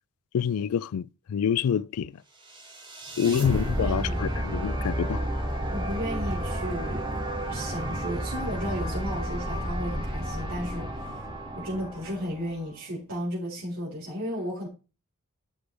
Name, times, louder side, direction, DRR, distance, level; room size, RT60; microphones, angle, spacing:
voice 1, 0.3-2.1 3.2-5.2, left 7 dB, 85° left, 0.4 m, -27 dB
sound 1, 2.5-12.7, right 1 dB, 20° right, 2.4 m, -31 dB
voice 2, 3.8-4.4 5.7-7.0 7.4-11.2 11.6-14.7, equal, 65° right, 4.5 m, -34 dB
13.0 x 6.2 x 3.4 m
head